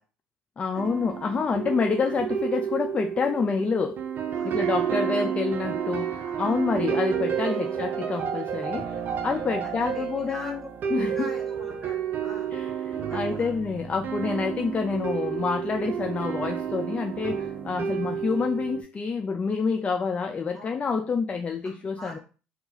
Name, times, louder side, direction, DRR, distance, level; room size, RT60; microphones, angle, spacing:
voice 1, 0.6-4.0 4.4-10.6 10.9-11.3 12.5-22.2, left 5 dB, 30° left, 0.3 m, -28 dB
sound 1, 0.8-18.8, right 8 dB, 50° right, 0.6 m, -30 dB
voice 2, 4.3-4.7 5.1-5.3 6.2-6.6 7.6-7.8 9.1-9.3 9.6-10.7 11.1-12.5 13.0-13.6 20.5-20.8 21.6-22.2, right 1 dB, 5° left, 1.7 m, -44 dB
2.7 x 2.4 x 3.9 m
supercardioid pair, 75°, 4 cm